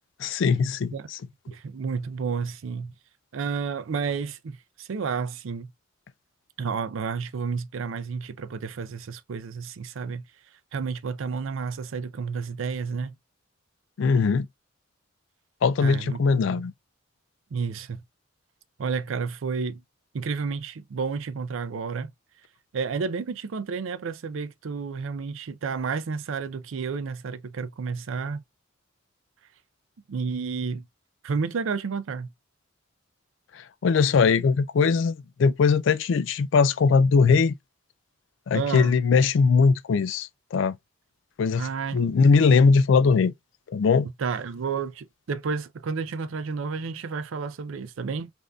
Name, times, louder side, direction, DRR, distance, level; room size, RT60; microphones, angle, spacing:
voice 1, 0.2-1.2 14.0-14.5 15.6-16.7 33.5-35.1 35.4-37.5 38.5-40.8 41.4-43.3 43.7-44.1, left 5 dB, 65° left, 0.3 m, -20 dB
voice 2, 1.5-2.9 3.3-5.7 6.6-10.2 10.7-13.1 15.8-16.2 16.5-16.7 17.5-18.0 18.8-19.8 20.1-22.1 22.7-28.4 30.1-30.8 31.2-32.3 38.5-39.0 41.5-42.0 44.2-48.3, right 5 dB, 75° right, 0.4 m, -31 dB
3.5 x 2.6 x 2.3 m
head